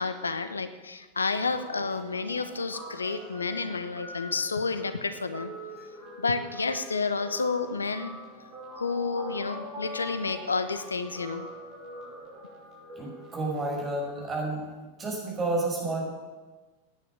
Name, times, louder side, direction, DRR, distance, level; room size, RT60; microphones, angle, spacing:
voice 1, 0.0-5.5 6.2-8.2 8.7-11.5, left 4 dB, 75° left, 11 dB, 1.0 m, -30 dB
Guitar, 1.5-14.2, equal, 40° right, 5.4 m, -44 dB
voice 2, 13.0-14.7 15.0-16.0, right 2 dB, 20° right, -2 dB, 6.0 m, -30 dB
15.5 x 10.0 x 6.5 m, 1.2 s
figure-of-eight pair, 90°, 0 cm